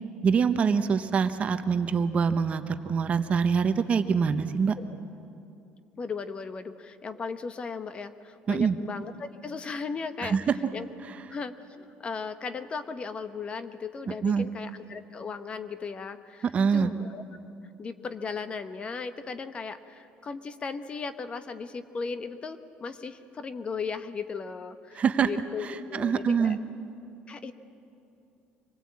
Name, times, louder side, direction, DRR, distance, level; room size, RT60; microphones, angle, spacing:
voice 1, 0.2-4.7 8.5-8.8 10.2-10.4 14.2-14.5 16.5-16.9 25.0-25.3 25.9-26.6, right 6 dB, 35° right, 10 dB, 1.0 m, -24 dB
voice 2, 6.0-10.4 10.7-10.9 11.3-17.2 17.8-26.6 27.3-27.5, left 5 dB, 30° left, 11 dB, 1.0 m, -37 dB
25.5 x 19.5 x 8.6 m, 2.7 s
cardioid pair, 135°, 4 cm